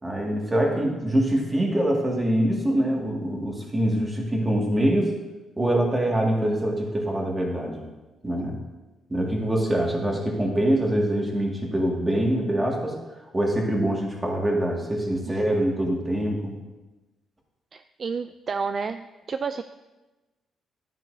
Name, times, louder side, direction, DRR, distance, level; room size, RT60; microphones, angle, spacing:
voice 1, 0.0-5.1 5.6-7.9 8.2-8.6 9.1-13.0 13.3-16.6, right 1 dB, 20° right, 0 dB, 2.0 m, -24 dB
voice 2, 17.7-19.6, right 5 dB, 45° right, 9 dB, 0.3 m, -30 dB
10.5 x 9.7 x 2.7 m, 1.1 s
cardioid pair, 90°, 0 cm